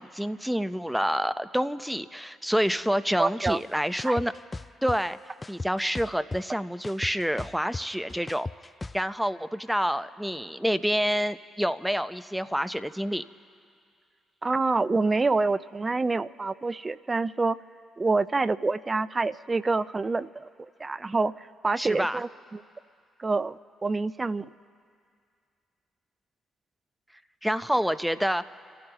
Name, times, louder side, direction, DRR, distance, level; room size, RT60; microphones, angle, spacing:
voice 1, 0.0-4.3 4.8-5.2 5.5-8.5 8.9-13.2 21.8-22.2 27.4-28.5, equal, 5° right, 12 dB, 0.8 m, -28 dB
voice 2, 3.2-3.6 4.0-4.2 14.4-17.6 18.0-20.5 20.8-22.6 23.2-24.5, right 3 dB, 30° right, 16 dB, 0.6 m, -27 dB
sound 1, 3.5-3.6 4.0-5.0 5.4-6.5 6.8-9.0, left 3 dB, 25° left, 0.3 m, -36 dB
29.0 x 14.5 x 3.1 m, 2.3 s
hypercardioid pair, 45°, 0 cm